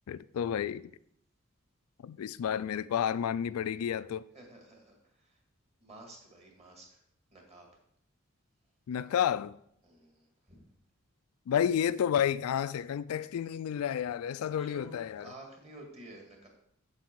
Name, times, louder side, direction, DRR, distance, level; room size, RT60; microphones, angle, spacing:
voice 1, 0.1-0.9 2.0-4.2 8.9-9.6 11.5-15.3, left 9 dB, 80° left, 0.3 m, -31 dB
voice 2, 4.3-5.4 5.8-7.0 7.3-7.7 9.8-10.6 14.6-16.5, right 1 dB, 30° right, 2.1 m, -51 dB
8.1 x 7.5 x 4.6 m
head